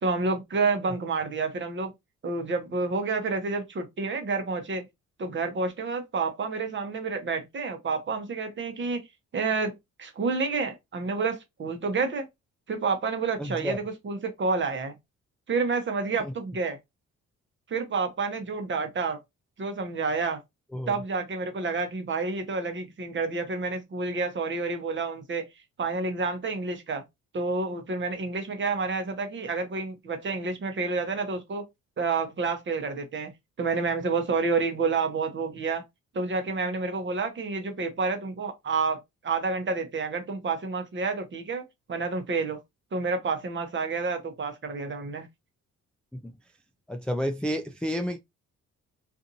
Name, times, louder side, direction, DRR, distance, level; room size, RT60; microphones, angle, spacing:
voice 1, 0.0-1.9 2.2-4.8 5.2-9.0 9.3-12.3 12.7-15.0 15.5-16.8 17.7-19.2 19.6-20.4 20.9-25.5 25.8-27.0 27.3-31.7 32.0-33.3 33.6-35.8 36.1-41.6 41.9-42.6 42.9-45.3, right 4 dB, 40° right, 0.9 m, -29 dB
voice 2, 13.4-13.8 16.2-16.3 20.7-21.0 46.9-48.2, equal, 5° left, 0.4 m, -30 dB
2.6 x 2.5 x 2.6 m
cardioid pair, 90°, 30 cm